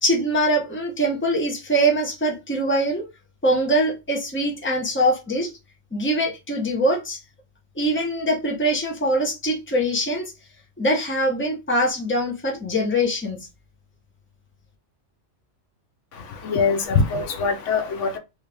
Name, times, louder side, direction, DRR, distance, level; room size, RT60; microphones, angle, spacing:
voice 1, 0.0-3.0 3.4-5.5 5.9-7.2 7.7-10.3 10.8-13.4, right 1 dB, 10° left, 0.8 m, -23 dB
voice 2, 16.1-18.2, left 5 dB, 80° left, 1.1 m, -23 dB
3.3 x 2.7 x 3.3 m
omnidirectional pair, 1.2 m